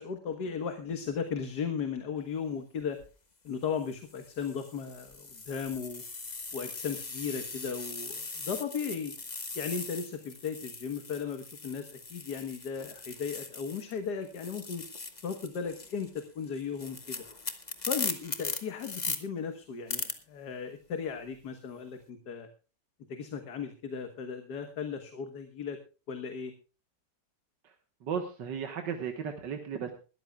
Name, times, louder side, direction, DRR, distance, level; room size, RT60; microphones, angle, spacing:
voice 1, 0.0-3.0 3.4-6.0 6.5-9.2 9.6-14.8 15.2-17.2 17.9-22.5 23.1-25.8 26.1-26.5, left 6 dB, 65° left, 7 dB, 1.8 m, -36 dB
sound 1, 2.8-3.1 3.8-14.0 14.2-19.2 19.9-20.1, left 3 dB, 25° left, 1.5 m, -40 dB
voice 2, 28.0-29.9, right 7 dB, 80° right, 4 dB, 2.0 m, -35 dB
21.0 x 13.5 x 2.3 m, 0.34 s
omnidirectional pair, 1.9 m